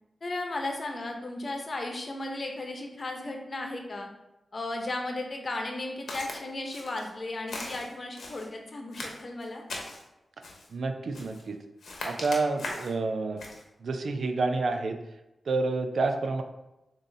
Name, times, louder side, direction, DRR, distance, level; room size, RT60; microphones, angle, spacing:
voice 1, 0.2-4.1 4.5-9.6, left 2 dB, 55° left, 2 dB, 0.8 m, -35 dB
Walk footsteps, 6.1-6.4 6.7-7.1 7.5-8.5 8.9-10.0 10.4-10.7 11.1-11.5 11.8-13.0 13.4-13.6, left 2 dB, 80° left, 0.9 m, -39 dB
voice 2, 10.7-11.6 12.0-13.4 13.8-15.0 15.5-16.4, right 3 dB, 75° right, 6 dB, 0.4 m, -29 dB
6.9 x 2.7 x 2.7 m, 0.96 s
cardioid pair, 45°, 0 cm